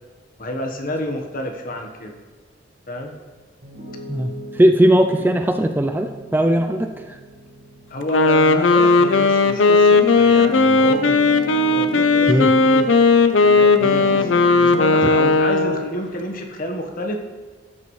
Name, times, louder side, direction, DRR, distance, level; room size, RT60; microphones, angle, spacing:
voice 1, 0.4-2.2 2.9-3.2 5.2-5.3 7.9-11.2 11.7-12.9 13.5-17.1, left 1 dB, 45° left, 3 dB, 1.2 m, -29 dB
Piano, 3.6-13.0 13.4-15.4, equal, 55° right, 1.7 m, -37 dB
voice 2, 4.6-7.2 12.3-12.5 15.0-15.1, right 1 dB, 10° right, 6 dB, 0.4 m, -18 dB
Wind instrument woodwind instrument, 8.0-15.9, left 3 dB, 85° left, 0.6 m, -16 dB
13.0 x 8.2 x 3.2 m, 1.4 s
head